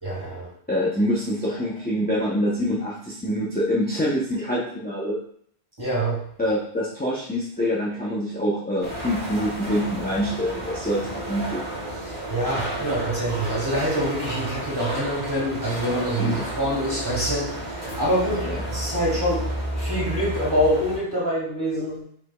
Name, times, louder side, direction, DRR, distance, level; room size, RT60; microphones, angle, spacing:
voice 1, 0.0-0.5 5.8-6.2 12.0-19.4 19.8-22.0, equal, 20° right, -7 dB, 2.0 m, -25 dB
voice 2, 0.7-5.2 6.4-11.7 16.2-16.5 18.4-18.6, equal, 10° left, -6 dB, 0.5 m, -25 dB
sound 1, 8.8-21.0, right 1 dB, 75° right, 1.6 m, -31 dB
5.0 x 4.0 x 2.2 m, 0.62 s
omnidirectional pair, 1.1 m